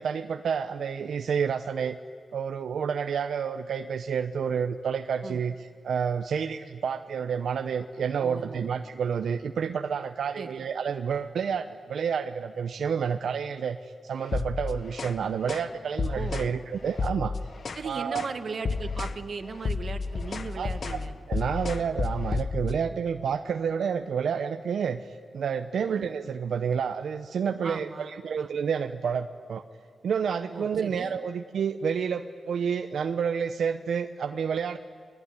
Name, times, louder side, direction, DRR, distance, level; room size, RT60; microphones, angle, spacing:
voice 1, 0.0-2.0 2.3-5.5 5.8-17.3 17.8-18.3 20.6-20.7 21.3-25.1 25.3-29.6 30.0-34.8, right 7 dB, 70° right, 7 dB, 0.8 m, -29 dB
voice 2, 8.2-8.6 10.4-10.6 16.1-16.4 17.7-21.2 25.9-26.1 27.6-28.5 30.5-31.1, right 4 dB, 45° right, 8 dB, 1.8 m, -38 dB
sound 1, 14.2-15.2 15.5-15.7 16.0-16.5 16.9-17.9 18.1-18.4 18.6-19.2 19.5-22.8, left 4 dB, 40° left, 0.9 m, -31 dB
30.0 x 20.5 x 9.8 m, 2.1 s
wide cardioid pair, 145°, 0 cm